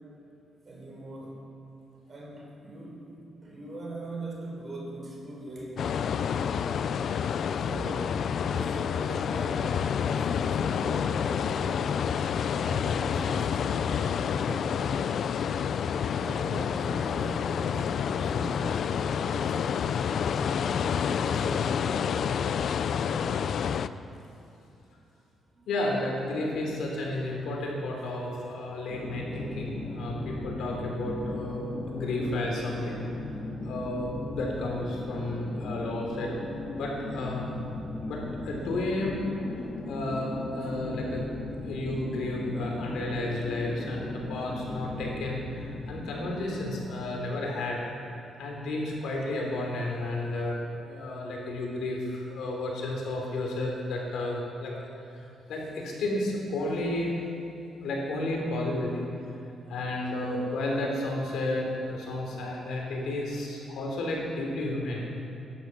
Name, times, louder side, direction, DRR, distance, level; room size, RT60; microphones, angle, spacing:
voice 1, 0.6-1.4 2.1-6.2 7.6-12.1 12.6-15.1 16.1-17.8 18.1-19.9 20.3-22.5 23.0-23.8 29.5-29.6 46.7-47.1, right 2 dB, 45° right, -2 dB, 4.0 m, -42 dB
sound 1, 5.8-23.9, left 7 dB, 65° left, 0.4 m, -28 dB
voice 2, 25.7-33.1 33.6-36.3 36.7-37.5 38.0-39.2 39.9-41.3 41.6-47.8 48.4-50.6 50.8-54.7 55.5-57.2 57.8-59.1 59.7-65.1, left 1 dB, 80° left, -1 dB, 3.4 m, -32 dB
sound 2, 28.9-47.5, left 2 dB, 35° left, 2.2 m, -37 dB
14.5 x 11.0 x 6.0 m, 2.9 s
cardioid pair, 75°, 0 cm